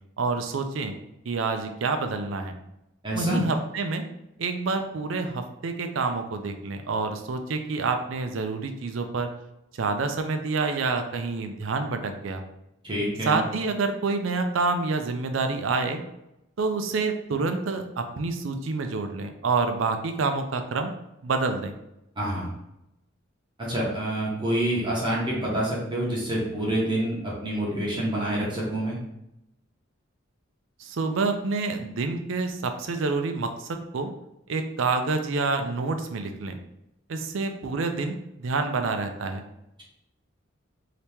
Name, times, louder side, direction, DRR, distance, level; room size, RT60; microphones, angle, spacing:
voice 1, 0.2-0.9 1.3-2.5 3.1-4.1 4.4-9.3 9.7-12.4 13.2-16.0 16.6-20.9 21.2-21.7 30.8-34.1 34.5-36.6 37.1-39.4, right 4 dB, 75° right, 6 dB, 0.5 m, -27 dB
voice 2, 3.0-3.4 12.8-13.4 22.2-22.5 23.6-29.0, right 1 dB, 25° right, -6 dB, 0.9 m, -27 dB
2.9 x 2.8 x 3.4 m, 0.85 s
head